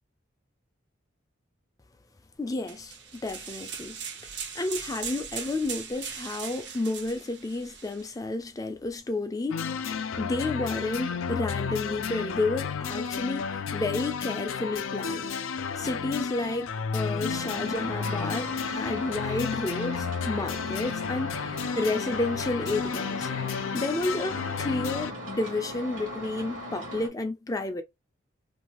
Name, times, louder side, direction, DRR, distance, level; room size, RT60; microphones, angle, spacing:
voice 1, 2.4-4.0 4.5-9.8 10.2-15.3 15.8-27.8, left 2 dB, 20° left, 0.4 m, -31 dB
sound 1, 2.7-8.1, right 7 dB, 60° right, 0.6 m, -39 dB
sound 2, 9.5-25.1, left 6 dB, 85° left, 0.4 m, -32 dB
sound 3, 17.3-27.1, equal, 75° right, 1.1 m, -39 dB
2.6 x 2.3 x 2.9 m
head